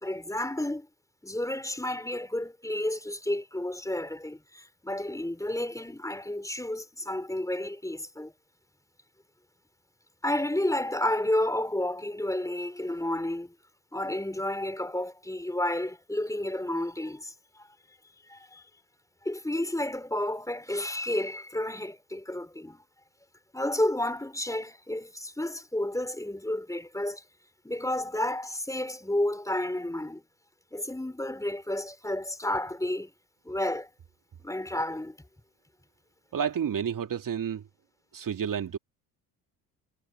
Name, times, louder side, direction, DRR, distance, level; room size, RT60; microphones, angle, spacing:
voice 1, 0.0-0.9 1.2-8.3 10.2-13.5 13.9-17.7 18.3-18.7 19.2-22.8 23.5-27.2 27.6-30.2 30.7-33.1 33.4-33.9 34.4-35.2, left 1 dB, 5° left, 4.5 m, -31 dB
voice 2, 36.3-37.6 38.1-38.8, right 8 dB, 45° right, 2.9 m, -30 dB
hypercardioid pair, 60°, 45 cm